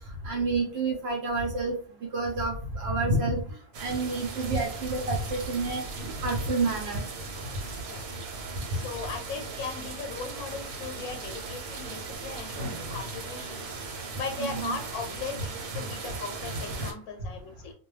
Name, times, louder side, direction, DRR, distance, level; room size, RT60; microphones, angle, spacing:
voice 1, 0.2-1.7 2.1-3.4 3.8-5.8 6.2-7.0 14.4-14.8, right 3 dB, 65° right, 1 dB, 0.7 m, -28 dB
sound 1, 3.7-16.9, right 3 dB, 85° right, 1.1 m, -38 dB
voice 2, 8.7-17.7, left 4 dB, 85° left, 5 dB, 1.0 m, -38 dB
2.2 x 2.2 x 3.1 m, 0.43 s
omnidirectional pair, 1.5 m